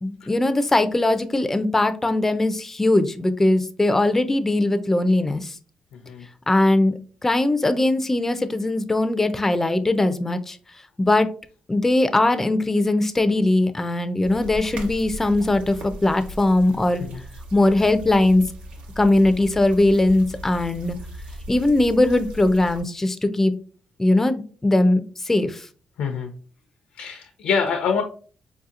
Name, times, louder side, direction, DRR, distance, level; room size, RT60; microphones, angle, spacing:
voice 1, 0.0-5.5 6.5-6.9 7.2-10.6 11.0-11.3 11.7-17.1 17.5-18.4 19.0-21.0 21.5-23.5 24.0-25.7, left 2 dB, 15° left, 10 dB, 0.4 m, -20 dB
voice 2, 5.9-6.3 17.1-17.2 26.0-26.3 27.0-28.0, left 6 dB, 90° left, 4 dB, 0.5 m, -25 dB
sound 1, 14.2-22.8, equal, 80° right, 0.8 m, -38 dB
4.4 x 2.7 x 2.4 m, 0.41 s
cardioid pair, 105°, 2 cm